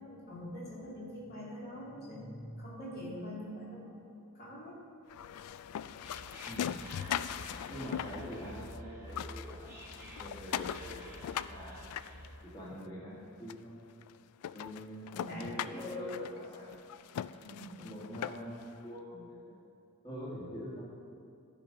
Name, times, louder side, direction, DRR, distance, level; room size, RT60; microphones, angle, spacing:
voice 1, 0.0-4.8 15.1-16.4 17.4-17.7, left 1 dB, 50° left, -6 dB, 2.8 m, -44 dB
sound 1, 5.1-8.8 9.1-12.8 13.5-13.6 14.0-14.1 14.4-18.7, left 9 dB, 85° left, 0.3 m, -40 dB
Whispering, 5.6-12.5, right 1 dB, 10° right, 1.1 m, -50 dB
voice 2, 6.4-6.8 7.7-11.8 12.4-13.7 14.5-16.8 17.8-19.6 20.0-20.8, equal, 20° left, -7 dB, 1.9 m, -45 dB
13.5 x 5.2 x 5.5 m, 2.4 s
head